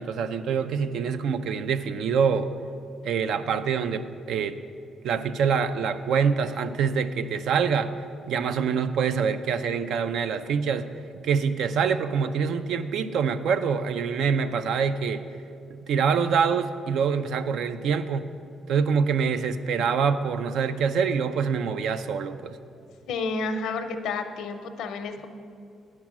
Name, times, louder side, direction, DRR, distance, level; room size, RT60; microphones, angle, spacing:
voice 1, 0.0-2.5 3.0-4.6 5.0-7.9 8.3-10.9 11.2-15.2 15.7-18.3 18.7-22.6, right 6 dB, 75° right, 11 dB, 0.4 m, -25 dB
voice 2, 23.1-25.3, left 4 dB, 85° left, 7 dB, 0.6 m, -30 dB
9.3 x 6.1 x 6.0 m, 2.4 s
cardioid pair, 90°, 0 cm